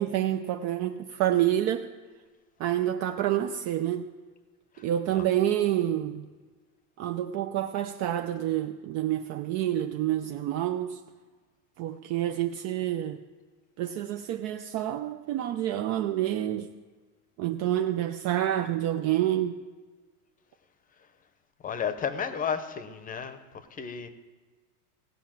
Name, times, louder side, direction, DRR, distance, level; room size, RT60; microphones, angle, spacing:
voice 1, 0.0-1.9 2.6-4.1 4.8-6.3 7.0-11.0 11.8-13.2 13.8-16.7 17.4-19.6, right 12 dB, 35° right, 7 dB, 0.6 m, -28 dB
voice 2, 21.6-23.4 23.8-24.1, left 7 dB, 20° left, 11 dB, 0.8 m, -32 dB
16.5 x 5.7 x 7.4 m, 1.4 s
supercardioid pair, 130°, 45 cm